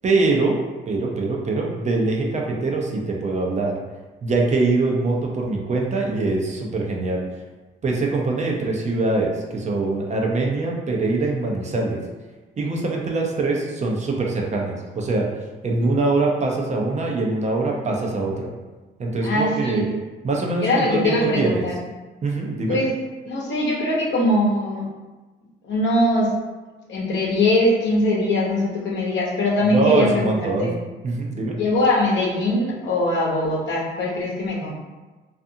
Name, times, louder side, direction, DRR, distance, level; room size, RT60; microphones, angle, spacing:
voice 1, 0.0-0.6 0.9-3.8 4.2-7.2 7.8-12.0 12.6-15.3 15.6-18.5 19.0-19.9 20.2-21.7 22.2-22.8 29.6-30.7 31.0-31.5, right 3 dB, 35° right, -1 dB, 0.5 m, -23 dB
voice 2, 19.2-19.9 20.6-21.8 22.7-22.9 23.2-24.8 25.6-26.3 26.9-30.8 31.5-34.7, left 1 dB, 65° left, -4 dB, 0.8 m, -21 dB
2.5 x 2.4 x 2.6 m, 1.2 s
cardioid pair, 90°, 20 cm